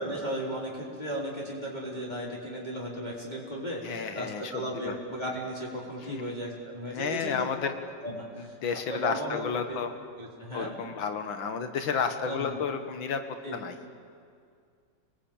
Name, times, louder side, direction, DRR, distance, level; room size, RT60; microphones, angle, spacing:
voice 1, 0.0-7.7 8.0-9.8 10.2-10.7 12.2-12.6 13.4-13.6, right 1 dB, 20° left, -4 dB, 4.2 m, -36 dB
voice 2, 3.8-4.5 4.8-4.9 6.1-6.2 6.9-7.8 8.4-9.9 10.5-13.2 13.5-13.8, left 6 dB, 90° left, 7 dB, 2.2 m, -31 dB
28.0 x 20.5 x 8.9 m, 2.2 s
omnidirectional pair, 2.1 m